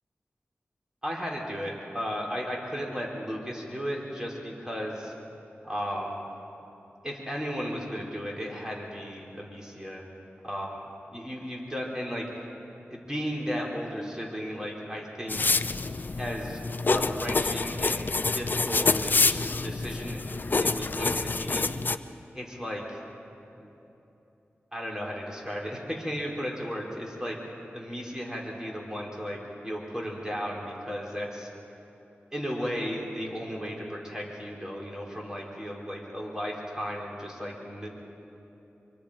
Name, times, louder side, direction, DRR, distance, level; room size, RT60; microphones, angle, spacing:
voice 1, 1.0-5.1 5.6-6.2 7.0-10.0 10.4-10.8 11.1-12.2 12.9-15.4 16.2-20.2 20.6-21.7 22.3-23.0 23.6-23.7 24.7-27.4 27.7-29.4 29.6-31.5 32.3-37.9, equal, 15° right, -2 dB, 4.5 m, -35 dB
sound 1, 15.3-22.0, left 3 dB, 45° left, 0.6 m, -27 dB
25.0 x 24.5 x 5.2 m, 3.0 s
wide cardioid pair, 70°, 4 cm